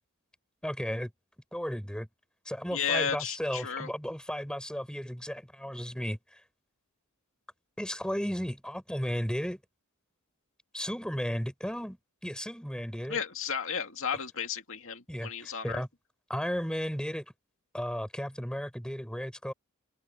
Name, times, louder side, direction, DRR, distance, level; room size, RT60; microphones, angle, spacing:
voice 1, 0.6-1.1 1.5-2.1 2.4-6.4 7.8-9.6 10.7-13.2 15.1-15.9 16.3-17.2 17.7-19.5, equal, 5° left, 6.5 m, -34 dB
voice 2, 2.7-3.9 13.1-15.8, left 7 dB, 65° left, 2.3 m, -33 dB
head